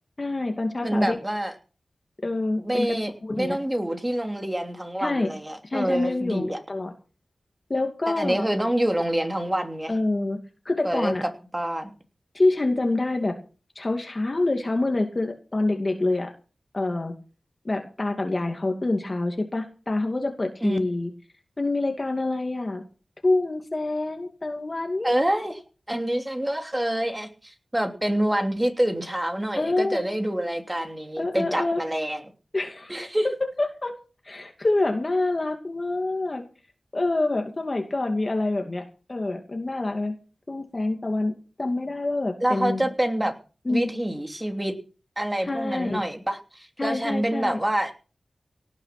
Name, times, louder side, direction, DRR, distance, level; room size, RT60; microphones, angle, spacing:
voice 1, 0.2-1.2 2.2-3.0 3.2-3.6 5.0-5.3 5.6-6.9 7.7-8.5 9.9-10.4 10.6-11.3 12.3-13.4 13.8-16.3 16.7-17.1 17.6-21.1 21.6-22.8 23.2-25.1 29.6-30.0 31.2-31.8 32.5-33.0 33.6-33.9 34.2-36.4 36.9-40.1 40.5-41.3 41.6-42.8 43.7-43.9 45.4-46.0 46.8-47.6, left 2 dB, 35° left, 4 dB, 2.4 m, -26 dB
voice 2, 0.8-1.5 2.6-6.6 8.1-9.9 10.8-11.9 20.6-20.8 25.0-25.6 25.9-32.2 32.9-33.3 42.4-43.3 43.7-44.7 45.2-47.9, right 1 dB, 15° right, 6 dB, 3.0 m, -26 dB
18.0 x 9.8 x 6.0 m, 0.36 s
wide cardioid pair, 95°, 0 cm